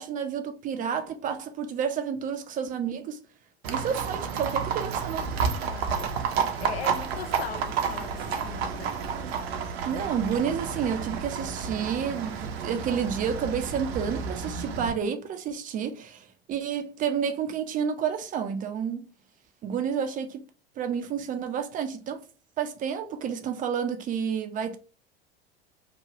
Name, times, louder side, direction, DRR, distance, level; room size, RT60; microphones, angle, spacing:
voice 1, 0.0-3.2 3.7-5.3 9.9-19.1 19.6-20.4 20.8-22.2 22.6-24.8, right 7 dB, 25° right, 0.4 m, -30 dB
Livestock farm animals working animals, 3.6-14.9, right 6 dB, 70° right, 0.6 m, -31 dB
voice 2, 5.6-6.1 6.6-9.0, left 7 dB, 70° left, 0.6 m, -39 dB
3.0 x 2.2 x 2.8 m
figure-of-eight pair, 80°, 32 cm